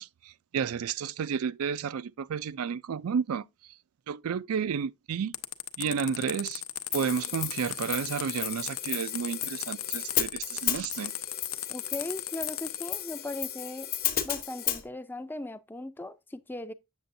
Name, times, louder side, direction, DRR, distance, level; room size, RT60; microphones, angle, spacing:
voice 1, 0.0-3.4 4.1-5.3 5.8-6.6 6.9-11.1, right 7 dB, 85° right, 0.4 m, -31 dB
sound 1, 5.3-12.9, left 13 dB, 80° left, 0.7 m, -36 dB
Hi-hat, 6.9-14.8, left 11 dB, 45° left, 1.0 m, -34 dB
voice 2, 11.7-13.9 14.2-16.7, left 2 dB, 10° left, 0.4 m, -38 dB
7.9 x 6.8 x 2.6 m
head